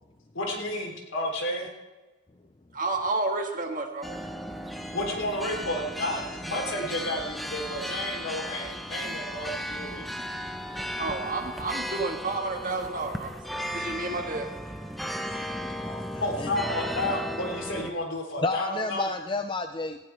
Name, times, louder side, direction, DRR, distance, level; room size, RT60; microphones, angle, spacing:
voice 1, 0.3-1.7 4.9-10.1 16.2-19.1, left 1 dB, 85° left, 1 dB, 3.5 m, -31 dB
voice 2, 2.7-4.0 11.0-13.3 13.7-14.5, right 3 dB, 40° right, 3 dB, 1.7 m, -30 dB
sound 1, 4.0-17.9, equal, ahead, 0.8 m, -35 dB
voice 3, 15.8-16.5 18.4-20.0, left 3 dB, 25° left, 8 dB, 0.5 m, -31 dB
18.0 x 15.0 x 3.4 m, 1.2 s
head